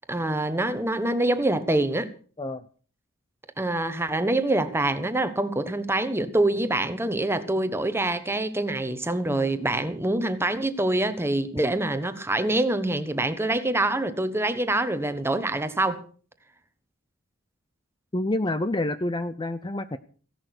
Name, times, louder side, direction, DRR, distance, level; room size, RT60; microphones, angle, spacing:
voice 1, 0.1-2.1 3.6-16.0, right 2 dB, 10° right, 1.2 m, -25 dB
voice 2, 18.1-20.0, left 1 dB, 20° left, 0.6 m, -28 dB
16.0 x 11.0 x 6.1 m
head